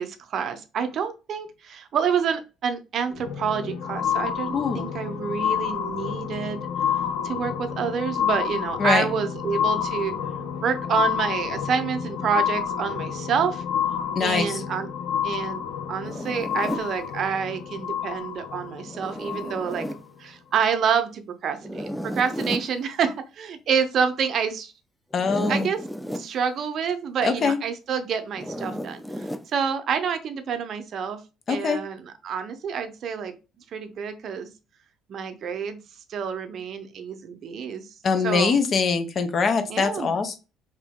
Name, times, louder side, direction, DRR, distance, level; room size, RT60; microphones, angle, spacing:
voice 1, 0.0-6.6 7.2-10.2 10.6-13.6 14.2-14.9 15.2-19.9 20.2-24.7 25.3-25.8 26.1-31.2 31.5-33.3 33.7-34.5 35.1-35.8 36.1-37.9 38.2-38.6 39.7-40.1, right 7 dB, 55° right, 8 dB, 0.6 m, -28 dB
sound 1, 3.1-20.0 20.7-20.8, left 8 dB, 85° left, 0.6 m, -29 dB
voice 2, 4.5-4.9 8.8-9.1 14.1-14.6 25.1-25.7 27.2-27.6 31.5-31.8 38.0-40.4, left 5 dB, 45° left, 8 dB, 0.6 m, -23 dB
Zipper (clothing), 16.0-16.9 18.9-20.0 21.6-22.7 25.1-26.3 28.3-29.5, equal, 5° left, 0.3 m, -33 dB
2.9 x 2.6 x 3.6 m, 0.30 s
cardioid pair, 90°, 0 cm